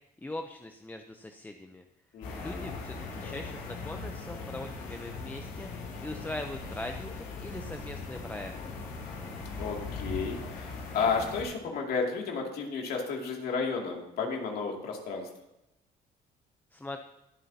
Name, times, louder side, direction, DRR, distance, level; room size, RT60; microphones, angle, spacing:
voice 1, 0.2-1.8 2.4-5.7 6.0-8.5 16.7-17.0, left 2 dB, 10° left, 5 dB, 0.6 m, -41 dB
voice 2, 2.1-2.8 9.6-15.3, left 5 dB, 65° left, 0 dB, 2.5 m, -32 dB
sound 1, 2.2-11.4, left 3 dB, 85° left, 3.7 m, -40 dB
21.0 x 7.2 x 2.8 m, 0.89 s
cardioid pair, 110°, 17 cm